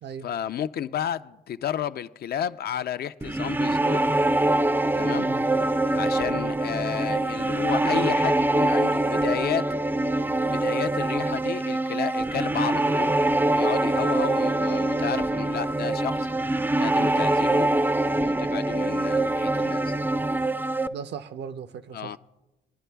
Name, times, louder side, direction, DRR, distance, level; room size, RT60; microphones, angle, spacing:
voice 1, 0.2-4.0 4.9-5.3 5.9-9.7 10.4-13.1 13.6-16.3 16.8-17.7 18.0-19.9 21.9-22.2, left 9 dB, 55° left, 0.4 m, -32 dB
sound 1, 3.2-20.9, right 2 dB, 10° right, 0.4 m, -24 dB
voice 2, 5.1-5.5 20.9-22.2, right 7 dB, 65° right, 0.6 m, -38 dB
20.0 x 10.5 x 2.3 m
cardioid pair, 65°, 19 cm